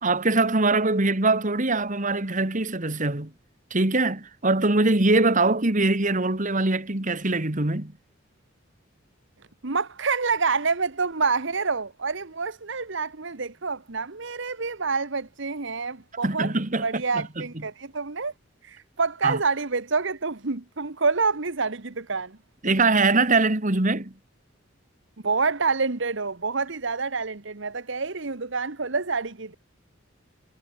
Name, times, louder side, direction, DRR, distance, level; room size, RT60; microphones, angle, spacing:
voice 1, 0.0-3.3 3.7-7.9 16.2-17.4 19.2-19.4 22.6-24.1, right 2 dB, 40° right, 2.1 m, -23 dB
voice 2, 9.6-16.5 16.8-18.3 18.6-22.4 25.2-29.5, right 4 dB, 65° right, 1.4 m, -27 dB
head